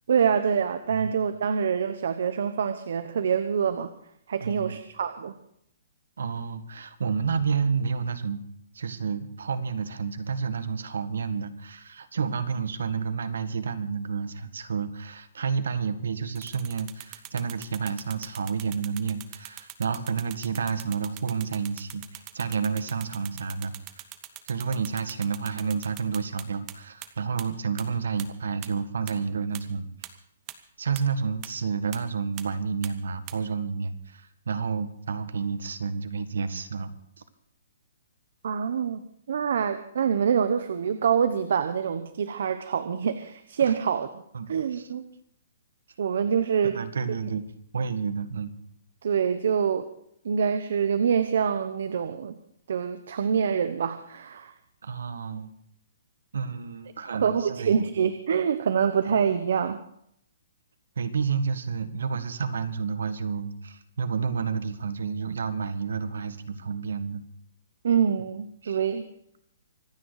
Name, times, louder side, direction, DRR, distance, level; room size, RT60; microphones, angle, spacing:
voice 1, 0.1-3.9 4.3-5.3 38.4-39.0 39.3-44.1 44.5-45.1 46.0-46.8 47.2-47.3 49.0-49.9 50.2-52.4 52.7-54.5 57.1-59.8 67.8-69.1, right 7 dB, 55° right, 10 dB, 1.0 m, -25 dB
voice 2, 4.4-4.8 6.2-8.4 8.7-23.7 24.5-29.9 30.8-36.9 43.6-43.7 44.3-44.9 46.6-47.4 47.7-48.5 54.8-55.5 56.3-57.8 61.0-67.2 68.6-68.8, right 5 dB, 90° right, 10 dB, 1.7 m, -30 dB
sound 1, 16.4-26.7 27.0-27.1 27.4-27.5 27.8-27.9 28.2-28.3 28.6-28.7 29.1-29.2 29.5-29.6 30.0-30.1 30.5-30.6 31.0-31.1 31.4-31.5 31.9-32.0 32.4-32.5 32.8-32.9 33.3-33.4, right 19 dB, 20° right, 0.9 m, -41 dB
25.5 x 9.3 x 4.9 m, 0.71 s
hypercardioid pair, 175°, 0 cm